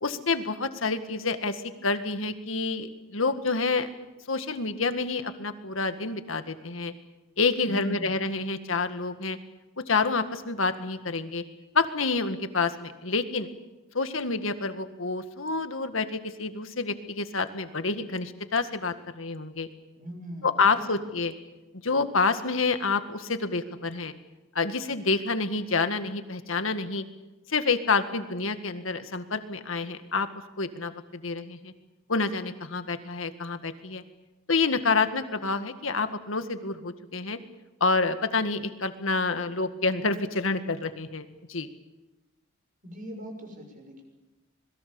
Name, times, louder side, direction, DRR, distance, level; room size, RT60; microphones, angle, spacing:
voice 1, 0.0-3.9 4.3-6.9 7.4-9.4 9.9-11.4 11.7-13.5 13.9-19.7 20.4-21.3 21.8-24.1 24.6-27.0 27.5-30.3 30.6-31.7 32.1-34.0 34.5-37.4 37.8-41.7, left 4 dB, 90° left, 9 dB, 1.9 m, -28 dB
voice 2, 7.7-8.4 19.9-21.1 42.8-44.0, left 1 dB, 45° right, 4 dB, 6.5 m, -40 dB
26.5 x 22.0 x 7.0 m, 1.1 s
head